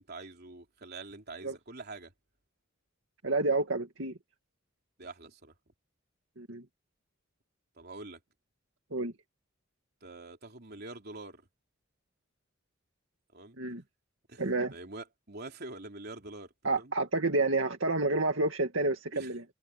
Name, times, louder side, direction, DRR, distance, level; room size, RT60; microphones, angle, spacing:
voice 1, 0.0-2.1 5.0-5.5 7.8-8.2 10.0-11.4 13.3-13.6 14.3-14.4 14.7-16.9 19.1-19.4, right 2 dB, 55° right, 3.6 m, -45 dB
voice 2, 3.2-4.2 6.4-6.6 8.9-9.1 13.6-13.8 14.4-14.7 16.6-19.4, right 2 dB, 75° right, 2.1 m, -29 dB
head